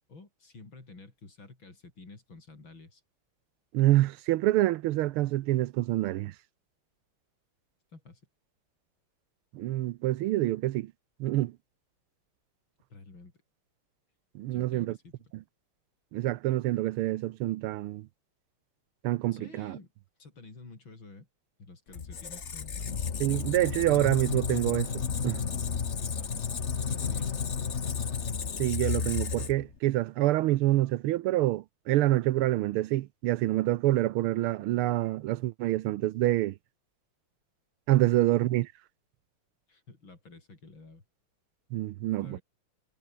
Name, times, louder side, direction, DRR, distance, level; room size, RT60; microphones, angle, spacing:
voice 1, 0.0-3.0 7.9-8.2 12.9-13.3 14.5-15.2 19.3-19.9 20.2-21.3 21.6-23.1 26.0-27.4 37.9-38.0 39.7-41.0 42.2-42.4, left 3 dB, 60° left, 5.8 m, -50 dB
voice 2, 3.7-6.3 9.5-10.9 11.2-11.5 14.3-15.0 16.1-18.1 19.0-19.8 23.2-25.4 28.6-36.5 37.9-38.7 41.7-42.4, right 15 dB, 80° right, 1.6 m, -27 dB
Squeak, 21.9-29.8, left 6 dB, 35° left, 1.4 m, -32 dB
omnidirectional pair, 2.4 m